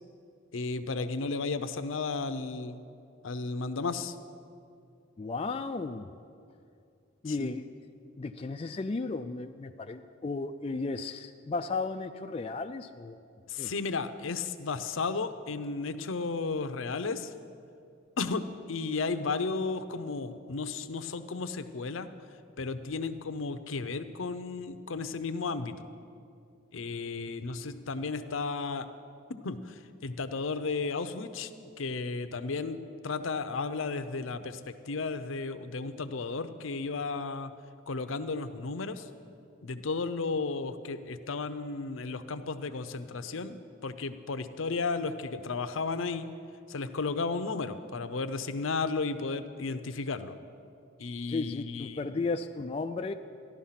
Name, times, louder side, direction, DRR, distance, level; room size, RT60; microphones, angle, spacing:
voice 1, 0.5-2.8 3.2-4.1 7.3-7.5 13.5-17.3 18.2-22.1 22.6-25.8 26.7-28.9 29.4-31.5 31.8-32.8 33.0-37.5 37.9-39.1 39.6-46.3 46.7-50.3 51.0-52.1, left 4 dB, 75° left, 10 dB, 0.7 m, -34 dB
voice 2, 5.2-6.1 7.2-7.7 8.2-13.2 13.6-13.7 51.3-53.1, left 3 dB, 30° left, 6 dB, 0.3 m, -34 dB
14.5 x 11.5 x 5.8 m, 2.4 s
head